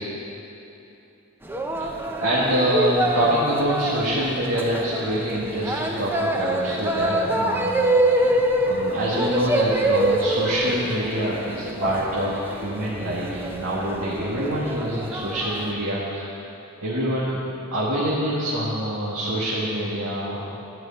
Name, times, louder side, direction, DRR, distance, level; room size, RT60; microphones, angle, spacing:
sound 1, 1.5-15.7, right 1 dB, 10° right, 0.7 m, -25 dB
voice 1, 2.2-7.7 8.6-16.3 16.8-17.4 17.7-20.6, equal, 85° right, -7 dB, 1.8 m, -25 dB
12.0 x 6.3 x 8.8 m, 2.9 s
head